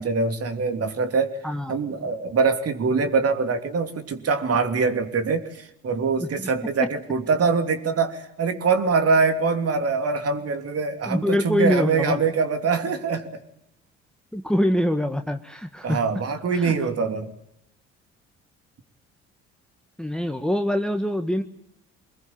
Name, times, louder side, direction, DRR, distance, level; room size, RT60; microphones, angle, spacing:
voice 1, 0.0-1.4 1.7-13.4 15.8-17.3, right 4 dB, 50° right, 7 dB, 3.1 m, -23 dB
voice 2, 1.4-1.8 6.2-6.5 11.1-12.2 14.3-16.1 16.5-16.7 20.0-21.4, equal, ahead, 6 dB, 1.7 m, -24 dB
24.5 x 21.0 x 8.9 m, 0.82 s
hypercardioid pair, 50°, 31 cm